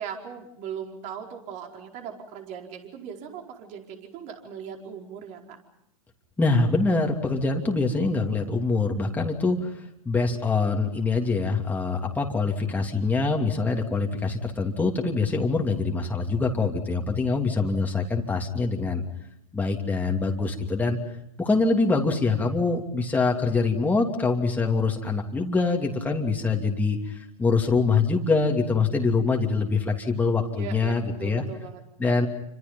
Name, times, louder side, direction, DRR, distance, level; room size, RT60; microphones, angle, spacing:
voice 1, 0.0-5.6 30.5-31.8, right 8 dB, 40° right, 2 dB, 4.8 m, -39 dB
voice 2, 6.4-9.7 10.0-19.0 19.5-21.0 21.4-31.4 32.0-32.3, left 3 dB, 10° left, 1 dB, 2.9 m, -24 dB
28.5 x 26.0 x 5.5 m, 0.79 s
hypercardioid pair, 110°, 20 cm